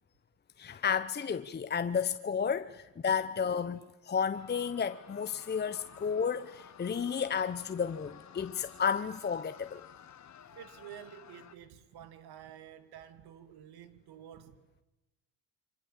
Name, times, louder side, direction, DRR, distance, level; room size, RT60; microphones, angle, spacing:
voice 1, 0.6-9.8, left 6 dB, 25° left, 0.9 m, -32 dB
sound 1, 4.3-11.5, left 8 dB, 40° left, 1.7 m, -53 dB
voice 2, 10.5-14.7, right 10 dB, 65° right, 2.3 m, -50 dB
28.0 x 25.0 x 7.4 m
supercardioid pair, 85°, 41 cm